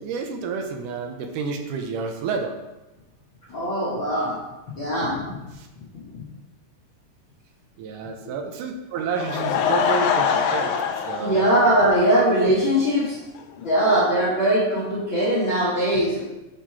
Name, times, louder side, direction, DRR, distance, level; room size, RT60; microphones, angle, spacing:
voice 1, 0.0-2.5 5.6-5.7 7.8-10.7 11.1-11.5, right 5 dB, 80° right, 3 dB, 2.1 m, -30 dB
voice 2, 3.5-4.4 4.7-5.2 11.2-13.1 13.6-16.2, right 1 dB, 55° left, -7 dB, 1.4 m, -20 dB
Laughter / Crowd, 9.0-12.4 12.8-12.9 13.4-13.5 13.7-13.8, left 7 dB, 85° left, 1.6 m, -24 dB
6.7 x 3.0 x 5.7 m, 1.0 s
omnidirectional pair, 3.8 m